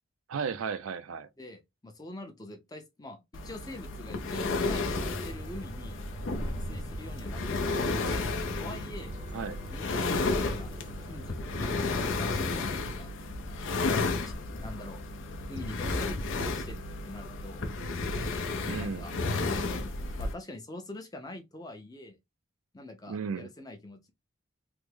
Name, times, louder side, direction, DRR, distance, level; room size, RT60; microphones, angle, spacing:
voice 1, 0.3-1.3 9.3-9.6 18.7-19.1 23.1-23.5, right 6 dB, 80° right, 0.4 m, -34 dB
voice 2, 1.4-6.0 6.7-9.1 9.7-13.1 14.5-15.0 15.5-17.7 18.8-19.1 20.2-22.2 22.7-24.1, left 1 dB, 20° left, 0.6 m, -44 dB
sound 1, 3.3-20.3, left 3 dB, 65° left, 0.5 m, -32 dB
sound 2, 4.3-11.9, equal, 20° right, 0.7 m, -43 dB
3.3 x 2.1 x 3.2 m
head